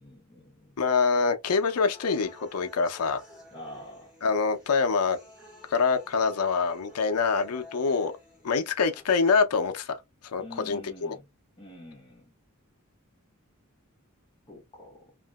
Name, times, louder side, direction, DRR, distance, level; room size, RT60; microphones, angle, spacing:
voice 1, 0.0-0.8 3.5-4.1 10.4-11.3 11.6-12.3 14.5-15.0, left 1 dB, 20° left, 0.8 m, -46 dB
voice 2, 0.8-3.2 4.2-5.2 5.7-8.1 8.4-10.0 10.2-11.2, left 5 dB, 85° left, 0.5 m, -25 dB
sound 1, 1.4-9.4, left 1 dB, 5° right, 1.6 m, -52 dB
2.8 x 2.5 x 2.2 m
head